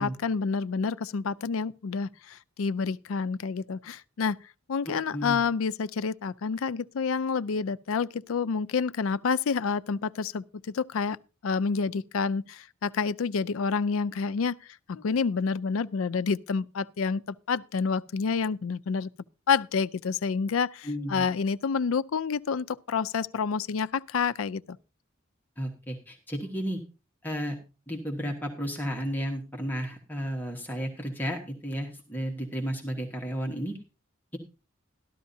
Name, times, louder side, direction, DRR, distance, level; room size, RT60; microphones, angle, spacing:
voice 1, 0.0-4.4 4.7-11.2 11.4-14.6 14.9-19.1 19.5-24.8, left 5 dB, 80° left, 0.4 m, -28 dB
voice 2, 4.8-5.4 20.8-21.3 25.6-26.8 27.2-27.5 27.9-33.8 34.3-34.4, equal, 10° left, 1.4 m, -33 dB
13.5 x 12.0 x 2.7 m
head